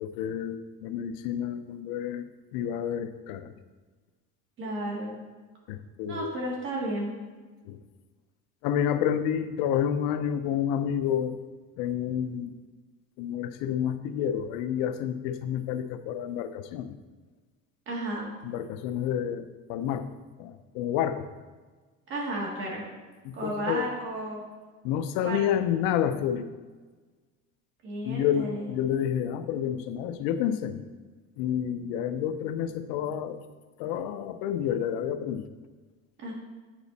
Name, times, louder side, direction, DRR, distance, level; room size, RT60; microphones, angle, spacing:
voice 1, 0.0-2.2 2.5-3.5 5.7-6.3 7.7-7.8 8.6-11.4 11.8-12.5 13.2-17.0 18.4-20.1 20.4-21.3 23.2-23.9 24.8-26.5 28.0-30.8 31.4-33.4 33.8-35.5, left 9 dB, 85° left, 10 dB, 0.7 m, -29 dB
voice 2, 4.6-5.1 6.1-7.2 17.9-18.3 22.1-22.8 23.3-24.4 25.2-25.4 27.8-28.7 36.2-36.3, right 1 dB, 40° right, -2 dB, 2.2 m, -33 dB
9.0 x 5.0 x 4.1 m, 1.4 s
cardioid pair, 155°, 32 cm